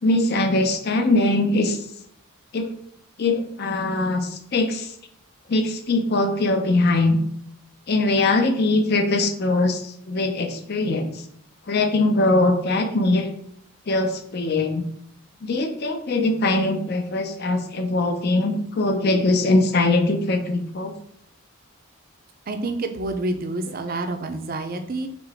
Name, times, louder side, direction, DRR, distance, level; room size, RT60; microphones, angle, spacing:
voice 1, 0.0-1.8 2.5-2.7 3.2-4.9 5.5-7.2 7.9-11.1 11.7-13.3 13.9-14.9 15.4-20.9, left 2 dB, 50° left, 6 dB, 0.5 m, -21 dB
voice 2, 22.5-25.1, right 2 dB, 45° right, 6 dB, 0.5 m, -28 dB
3.8 x 3.5 x 3.4 m, 0.71 s
head